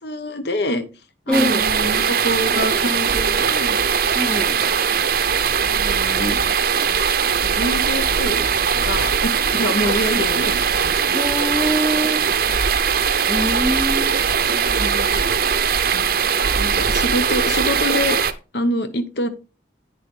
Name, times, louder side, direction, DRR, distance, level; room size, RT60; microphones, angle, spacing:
voice 1, 0.0-0.8 1.3-3.8 4.3-4.6 5.7-6.4 7.4-8.5 8.7-10.6 14.8-15.3 16.0-18.2 18.5-19.3, left 1 dB, 60° left, 1.1 m, -26 dB
voice 2, 1.3-1.6 4.1-4.5 11.1-12.3 13.3-14.1 14.5-15.2 15.9-16.1, equal, 5° left, 0.7 m, -24 dB
sound 1, 1.3-18.3, right 6 dB, 55° right, 0.8 m, -20 dB
9.9 x 6.6 x 3.8 m
head